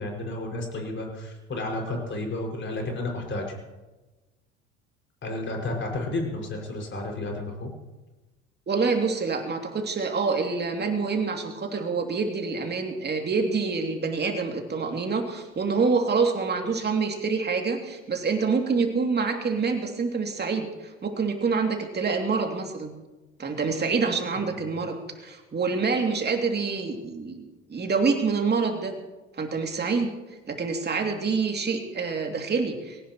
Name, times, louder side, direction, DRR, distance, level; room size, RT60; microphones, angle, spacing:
voice 1, 0.0-3.4 5.2-7.7 24.5-24.6, left 2 dB, 30° left, 1 dB, 5.9 m, -32 dB
voice 2, 8.7-20.7 21.0-22.9 23.4-25.0 25.2-27.4 27.7-28.9 29.4-30.1 30.5-33.0, right 4 dB, 30° right, 3 dB, 2.7 m, -26 dB
21.5 x 18.0 x 3.1 m, 1.1 s
hypercardioid pair, 70°, 36 cm